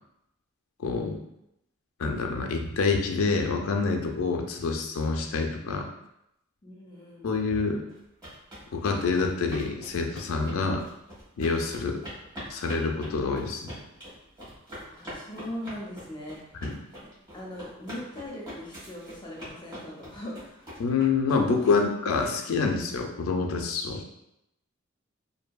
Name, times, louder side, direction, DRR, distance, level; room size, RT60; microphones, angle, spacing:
voice 1, 0.8-1.2 2.0-5.9 7.2-7.8 8.7-10.8 11.4-12.0 12.5-13.8 16.6-16.8 20.8-24.2, left 4 dB, 90° left, 3 dB, 0.4 m, -27 dB
voice 2, 6.6-7.3 14.9-16.4 17.3-20.7 21.6-21.8, left 1 dB, 25° left, -3 dB, 0.5 m, -40 dB
sound 1, 7.9-21.7, equal, 20° right, 1.2 m, -44 dB
2.6 x 2.5 x 2.2 m, 0.82 s
head